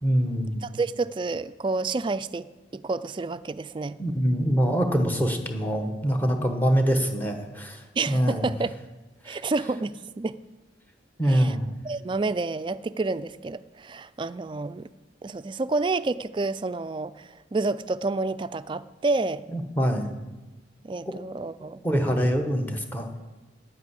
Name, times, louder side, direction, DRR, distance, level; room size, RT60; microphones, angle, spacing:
voice 1, 0.0-0.6 4.0-8.5 9.3-9.4 11.2-11.7 19.5-20.1 21.1-21.2 21.6-23.1, equal, 10° left, 5 dB, 1.2 m, -24 dB
voice 2, 0.6-2.5 2.7-4.0 8.0-8.7 9.3-10.4 11.3-11.6 11.8-14.9 15.2-19.4 20.8-21.8, right 3 dB, 25° right, 14 dB, 0.3 m, -29 dB
10.0 x 8.4 x 8.2 m, 1.1 s
head